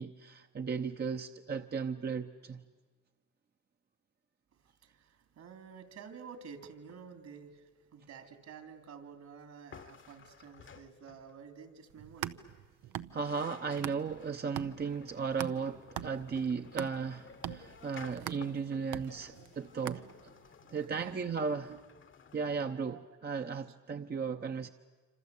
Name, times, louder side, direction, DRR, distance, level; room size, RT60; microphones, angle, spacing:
voice 1, 0.0-2.6 13.1-20.0 20.7-21.7 22.3-24.7, right 5 dB, 35° right, 0.9 m, -36 dB
voice 2, 4.8-12.4 20.9-21.8 22.7-23.0, right 6 dB, 65° right, 3.4 m, -50 dB
sound 1, 9.7-11.5 12.8-12.9 13.1-22.6, left 6 dB, 40° left, 1.1 m, -55 dB
sound 2, 11.9-14.3 14.6-20.5, right 12 dB, 85° right, 0.9 m, -43 dB
26.5 x 26.5 x 8.4 m
cardioid pair, 90°, 30 cm